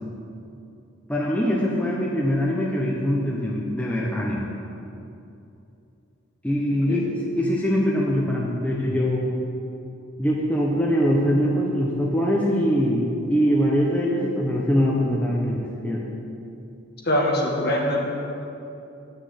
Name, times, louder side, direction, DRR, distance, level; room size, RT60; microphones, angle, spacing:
voice 1, 1.1-4.4 6.4-7.1 7.3-9.3 10.2-16.1, equal, 5° left, -4 dB, 0.9 m, -23 dB
voice 2, 17.0-18.0, left 1 dB, 45° left, -1 dB, 1.7 m, -23 dB
9.9 x 6.6 x 8.1 m, 2.7 s
head